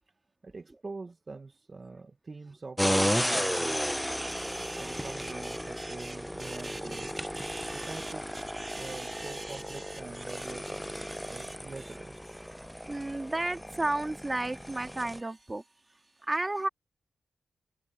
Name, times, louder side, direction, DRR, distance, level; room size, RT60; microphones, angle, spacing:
voice 1, 0.4-4.2 4.8-7.1 7.7-8.4 8.7-10.8 11.3-12.1, right 3 dB, 50° right, 1.5 m, -44 dB
sound 1, 2.8-15.2, equal, 5° left, 0.7 m, -34 dB
voice 2, 4.2-10.5 10.9-11.9 12.4-16.7, right 2 dB, 30° right, 3.2 m, -37 dB
supercardioid pair, 40°, 0 cm